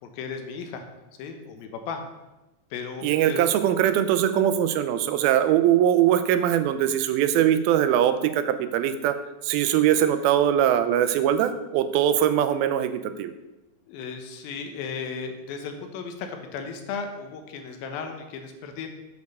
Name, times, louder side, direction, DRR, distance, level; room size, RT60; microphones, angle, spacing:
voice 1, 0.0-0.8 1.2-2.0 2.7-3.5 13.9-18.9, left 5 dB, 80° left, 5 dB, 2.8 m, -35 dB
voice 2, 3.0-9.2 9.4-13.3, right 10 dB, 90° right, 10 dB, 2.5 m, -22 dB
8.0 x 5.3 x 6.6 m, 1.0 s
omnidirectional pair, 4.3 m